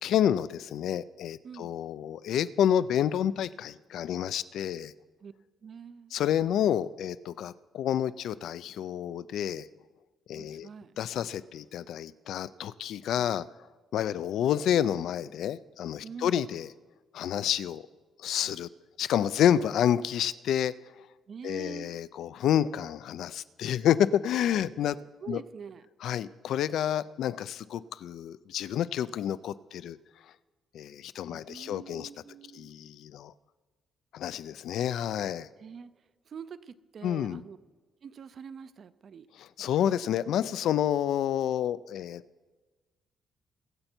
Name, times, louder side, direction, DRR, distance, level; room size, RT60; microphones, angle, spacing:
voice 1, 0.0-4.9 6.1-9.7 10.3-10.7 11.0-13.5 13.9-16.7 17.1-17.8 18.2-18.7 19.0-20.7 21.4-25.0 25.3-25.4 26.0-30.0 30.7-32.1 32.5-33.3 34.1-35.5 37.0-37.4 39.4-42.2, left 10 dB, 65° left, 17 dB, 0.4 m, -29 dB
voice 2, 1.4-1.8 5.2-5.3 5.6-6.1 10.3-11.3 13.2-13.3 16.0-16.5 21.3-21.9 25.2-25.9 31.3-32.7 35.6-35.9 36.3-37.6 38.0-39.3, right 6 dB, 40° right, 15 dB, 0.5 m, -45 dB
23.0 x 7.9 x 4.4 m, 1.3 s
cardioid pair, 170°, 0 cm